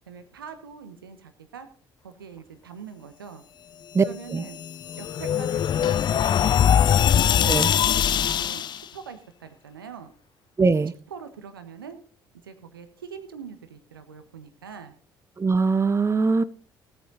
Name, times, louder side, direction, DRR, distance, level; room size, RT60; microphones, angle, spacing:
voice 1, 0.1-1.7 2.0-3.4 4.0-4.6 5.0-6.8 8.3-10.1 11.1-12.0 12.4-14.9, right 6 dB, 80° right, 1.3 m, -43 dB
sound 1, 4.3-8.8, left 9 dB, 40° left, 0.4 m, -22 dB
voice 2, 10.6-10.9 15.4-16.4, right 4 dB, 25° right, 0.9 m, -21 dB
17.5 x 8.7 x 3.9 m
figure-of-eight pair, 50°, 12 cm